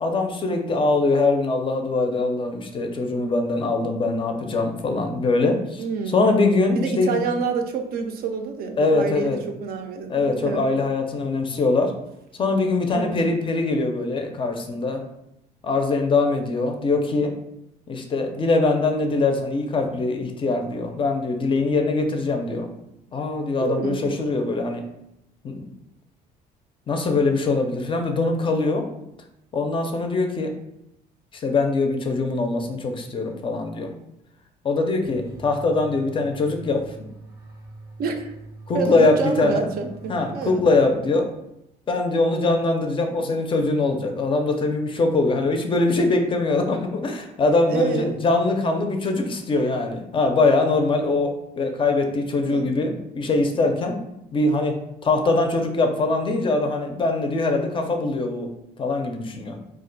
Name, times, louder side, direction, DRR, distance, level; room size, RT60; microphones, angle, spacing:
voice 1, 0.0-5.8 6.1-7.2 8.8-9.4 10.1-11.9 12.4-15.0 15.6-17.3 17.9-22.7 23.1-24.8 25.4-25.7 26.9-28.9 29.5-30.5 31.3-33.9 34.6-36.8 38.7-39.7 40.1-41.3 41.9-54.0 54.3-54.7 55.0-58.5 58.8-59.6, left 3 dB, 30° left, 4 dB, 0.4 m, -22 dB
voice 2, 5.8-6.3 6.7-10.7 12.9-13.2 23.6-24.0 38.0-38.3 38.7-40.6 47.7-48.2 52.4-52.7, right 5 dB, 60° right, 5 dB, 0.4 m, -28 dB
sound 1, 35.0-41.2, right 2 dB, 15° right, 0.6 m, -43 dB
2.4 x 2.1 x 3.8 m, 0.82 s
cardioid pair, 110°, 17 cm